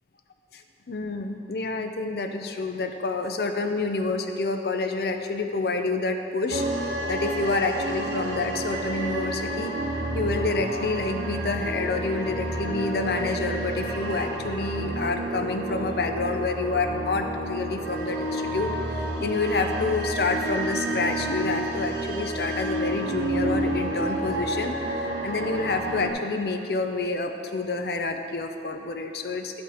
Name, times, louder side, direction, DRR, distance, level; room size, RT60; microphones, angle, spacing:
voice 1, 0.9-9.7 10.1-24.8 25.2-29.6, left 3 dB, 60° left, 6 dB, 0.5 m, -28 dB
sound 1, 6.5-26.1, right 1 dB, 65° right, 0.9 m, -30 dB
11.5 x 5.2 x 4.3 m, 2.7 s
head